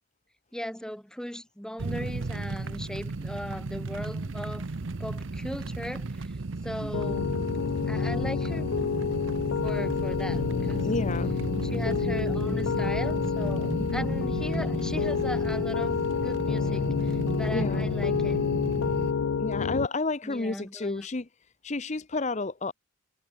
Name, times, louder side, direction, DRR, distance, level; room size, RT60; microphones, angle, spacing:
voice 1, 0.5-4.7 5.0-6.4 6.6-7.4 7.9-8.9 9.6-10.9 11.6-18.4 20.2-21.1, equal, 5° left, 2.3 m, -38 dB
sound 1, 1.8-19.1, right 3 dB, 60° right, 0.8 m, -34 dB
Piano, 6.9-19.9, left 6 dB, 70° left, 0.4 m, -28 dB
voice 2, 10.8-11.3 13.8-14.1 17.5-17.9 19.4-21.3 21.6-22.7, left 3 dB, 35° left, 0.7 m, -31 dB
head